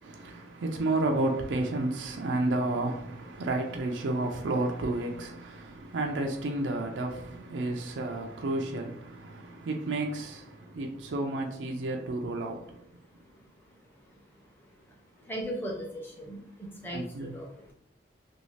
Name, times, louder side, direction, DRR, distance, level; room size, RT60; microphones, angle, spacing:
voice 1, 0.0-12.8 16.9-17.4, right 2 dB, 90° right, 0.4 m, -31 dB
voice 2, 15.3-17.7, equal, 10° left, 0.6 m, -38 dB
2.6 x 2.4 x 3.1 m
head